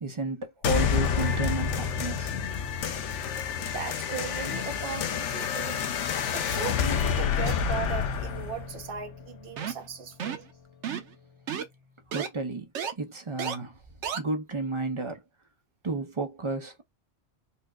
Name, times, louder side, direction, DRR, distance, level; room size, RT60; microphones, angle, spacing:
voice 1, 0.0-2.3 12.1-12.7 13.0-13.8 14.1-15.2 15.8-16.8, right 2 dB, 35° right, 0.5 m, -32 dB
sound 1, 0.6-9.6, left 7 dB, 80° left, 0.9 m, -29 dB
voice 2, 3.6-5.9 6.3-10.5, right 7 dB, 55° right, 0.9 m, -37 dB
sound 2, 9.6-9.9 10.2-10.5 10.8-11.2 11.5-11.7 12.1-12.3 12.8-12.9 13.4-13.6 14.0-14.2, right 8 dB, 85° right, 1.0 m, -32 dB
4.3 x 2.1 x 2.3 m
omnidirectional pair, 1.2 m